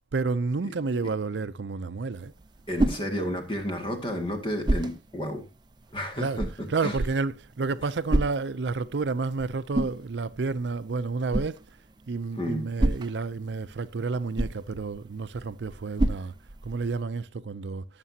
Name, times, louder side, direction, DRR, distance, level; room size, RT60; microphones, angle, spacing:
voice 1, 0.1-2.3 6.2-6.4 6.7-11.6 12.1-16.3 16.6-17.9, right 4 dB, 85° right, 0.5 m, -30 dB
sound 1, 2.1-17.0, right 1 dB, 25° right, 0.6 m, -33 dB
voice 2, 2.7-5.4 5.9-7.0 12.4-12.7, equal, 30° left, 2.0 m, -32 dB
18.5 x 6.8 x 2.8 m
head